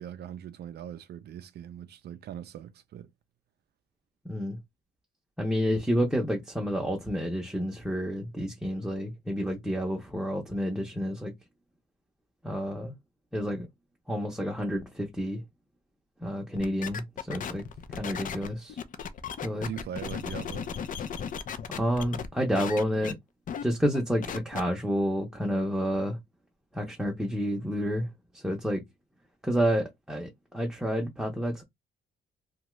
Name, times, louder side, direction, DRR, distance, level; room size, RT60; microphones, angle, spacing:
voice 1, 0.0-3.1 19.6-20.7, right 10 dB, 60° right, 0.4 m, -41 dB
voice 2, 4.2-4.6 5.4-11.3 12.4-12.9 13.3-13.7 14.1-15.4 16.2-17.6 17.9-18.8 19.4-19.7 21.7-23.1 23.6-26.2 26.7-28.1 28.3-28.8 29.4-31.6, equal, 5° right, 0.7 m, -29 dB
sound 1, 16.6-22.3 22.5-23.1 23.5-23.6 23.9-24.6, left 7 dB, 45° left, 0.5 m, -36 dB
2.7 x 2.3 x 3.1 m
cardioid pair, 125°, 20 cm